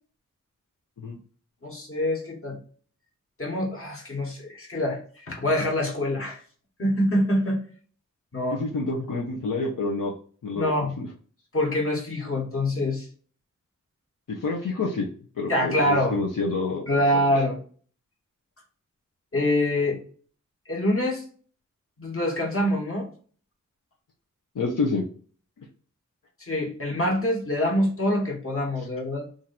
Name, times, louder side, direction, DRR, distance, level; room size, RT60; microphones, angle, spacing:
voice 1, 1.6-2.6 3.4-6.4 6.8-7.6 8.3-8.6 10.5-10.9 11.5-13.1 15.5-16.2 16.9-17.6 19.3-20.0 20.7-21.2 22.0-23.1 26.4-29.3, left 1 dB, 45° left, -1 dB, 1.4 m, -25 dB
voice 2, 8.5-10.1 10.4-11.1 14.3-15.1 15.4-17.0 24.5-25.0, left 3 dB, 80° left, -2 dB, 0.8 m, -28 dB
2.9 x 2.6 x 4.1 m, 0.43 s
wide cardioid pair, 95°, 32 cm